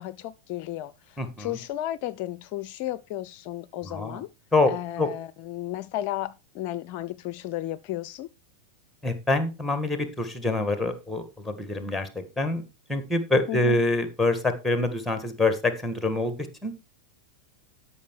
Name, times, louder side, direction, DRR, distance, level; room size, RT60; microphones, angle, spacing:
voice 1, 0.0-4.3 4.7-8.3 13.5-13.8, left 14 dB, 45° left, 0.4 m, -34 dB
voice 2, 1.2-1.6 3.8-4.2 4.5-4.7 5.0-5.1 9.0-12.6 12.9-16.4 16.6-16.7, left 2 dB, ahead, 1.8 m, -26 dB
12.5 x 5.6 x 4.5 m
figure-of-eight pair, 90°, 0 cm